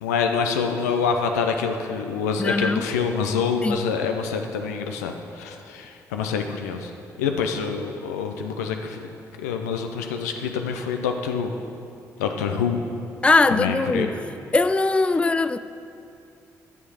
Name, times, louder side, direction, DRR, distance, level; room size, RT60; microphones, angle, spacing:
voice 1, 0.0-6.9 7.2-9.0 9.4-11.5 12.2-12.8 13.5-14.1, left 6 dB, 85° left, 0.6 m, -26 dB
voice 2, 2.4-2.8 3.6-3.8 13.2-14.1 14.5-15.6, left 3 dB, 15° left, 0.3 m, -20 dB
11.0 x 6.6 x 4.8 m
hypercardioid pair, 40°, 8 cm